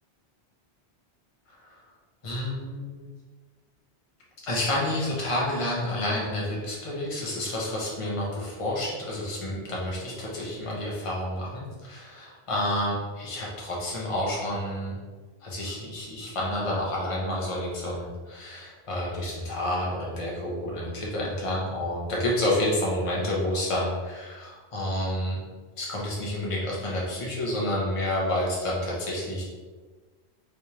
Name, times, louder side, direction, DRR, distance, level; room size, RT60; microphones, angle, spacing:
voice 1, 2.2-3.1 4.4-14.9 15.4-25.4 25.8-29.4, left 1 dB, 30° left, -5 dB, 0.9 m, -29 dB
3.4 x 3.4 x 2.9 m, 1.4 s
omnidirectional pair, 1.1 m